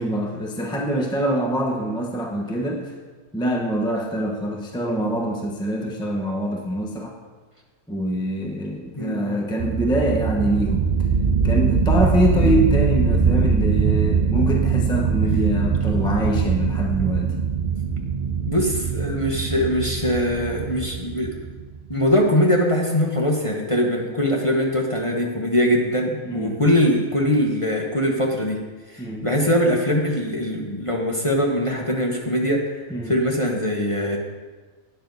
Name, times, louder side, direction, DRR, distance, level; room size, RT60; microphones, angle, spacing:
voice 1, 0.0-2.9 3.3-7.1 7.9-10.8 11.4-17.4 26.2-26.5 29.0-29.3 32.9-33.2, equal, 5° left, 0 dB, 0.9 m, -24 dB
voice 2, 9.0-9.4 12.3-12.5 15.9-16.1 18.5-21.4 21.9-28.6 28.9-34.2, equal, 25° left, -1 dB, 1.1 m, -22 dB
sound 1, 9.6-22.0, right 5 dB, 40° right, 0.9 m, -22 dB
12.0 x 9.2 x 4.0 m, 1.3 s
omnidirectional pair, 1.5 m